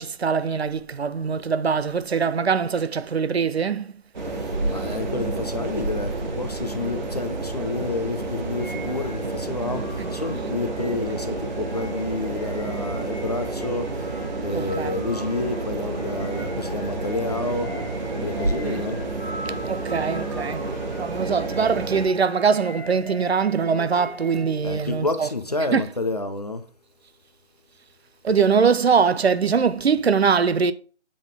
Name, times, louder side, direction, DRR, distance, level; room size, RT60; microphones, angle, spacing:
voice 1, 0.0-3.9 4.9-5.0 10.0-10.1 14.5-14.9 18.6-18.9 19.7-20.6 20.9-25.3 25.6-25.9 28.2-30.7, right 6 dB, 60° right, 0.5 m, -22 dB
sound 1, 4.1-22.1, right 2 dB, 40° right, 1.2 m, -30 dB
voice 2, 4.7-13.9 14.4-17.7 18.2-19.0 24.6-26.6, left 2 dB, 35° left, 0.5 m, -29 dB
sound 2, 8.6-24.8, equal, 10° left, 1.4 m, -41 dB
8.6 x 3.7 x 3.4 m
figure-of-eight pair, 155°, 36 cm